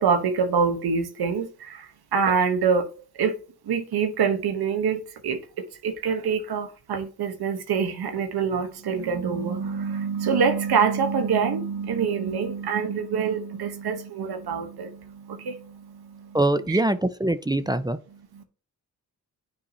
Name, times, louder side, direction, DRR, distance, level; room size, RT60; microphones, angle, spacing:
voice 1, 0.0-2.9 3.1-3.4 3.6-16.4 16.7-16.8 17.5-17.8 18.1-18.4, right 6 dB, 75° right, 1.2 m, -26 dB
voice 2, 16.3-18.0, right 1 dB, 10° right, 0.6 m, -23 dB
9.6 x 4.6 x 2.8 m
supercardioid pair, 40°, 38 cm